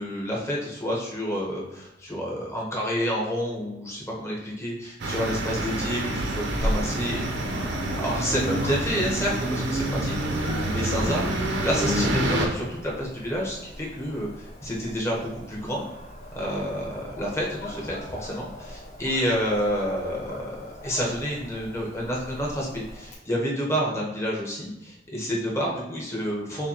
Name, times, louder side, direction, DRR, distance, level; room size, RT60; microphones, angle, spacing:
voice 1, 0.0-15.9 16.3-26.7, equal, 15° left, -3 dB, 0.9 m, -29 dB
sound 1, 5.0-12.5, right 1 dB, 60° right, 0.7 m, -27 dB
Dog, 6.6-23.1, left 1 dB, 40° left, 1.1 m, -39 dB
6.5 x 2.2 x 2.9 m, 0.94 s
head